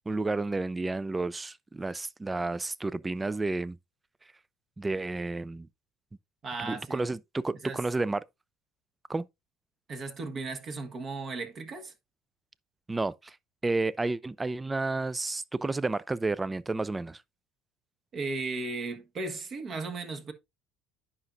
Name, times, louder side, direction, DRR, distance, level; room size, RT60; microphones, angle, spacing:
voice 1, 0.0-3.8 4.8-5.7 6.6-8.2 9.1-9.3 12.9-13.4 13.6-17.2, right 3 dB, 15° right, 0.4 m, -31 dB
voice 2, 6.4-7.1 7.6-7.8 9.9-11.9 18.1-20.3, right 3 dB, 40° right, 1.4 m, -36 dB
9.8 x 5.7 x 2.6 m
supercardioid pair, 110°, 0 cm